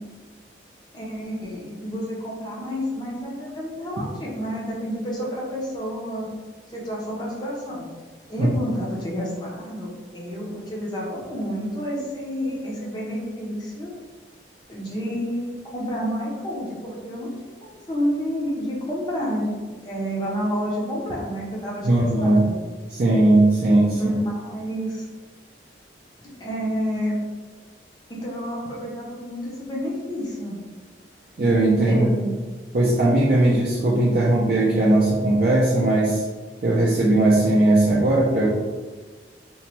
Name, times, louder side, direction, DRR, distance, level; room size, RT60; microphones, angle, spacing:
voice 1, 0.9-6.3 6.7-7.9 8.3-13.9 14.7-17.3 17.6-19.5 19.8-22.5 24.0-25.1 26.4-27.2 28.1-30.5 31.9-32.3, equal, 20° left, -4 dB, 0.6 m, -29 dB
voice 2, 21.8-22.4 22.9-24.2 31.4-32.1 32.7-36.2 36.6-38.5, right 1 dB, 50° right, -5 dB, 0.4 m, -18 dB
3.0 x 2.2 x 2.9 m, 1.4 s
head